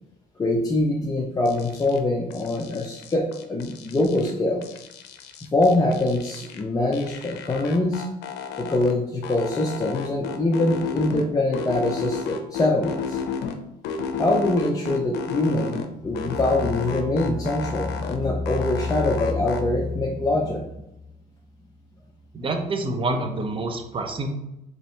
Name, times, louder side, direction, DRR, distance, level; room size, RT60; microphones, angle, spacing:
voice 1, 0.4-4.6 5.5-8.0 8.6-13.2 14.2-20.7, left 2 dB, 20° left, -2 dB, 0.5 m, -23 dB
sound 1, 1.5-2.0 2.3-4.3 4.6-6.6 6.9-8.9 9.2-11.2 11.5-13.6 13.8-15.9 16.1-18.2 18.5-19.6, left 6 dB, 85° left, 0.5 m, -32 dB
voice 2, 22.3-24.3, right 2 dB, 30° right, 5 dB, 0.7 m, -27 dB
3.0 x 2.7 x 4.4 m, 0.89 s
cardioid pair, 110°, 17 cm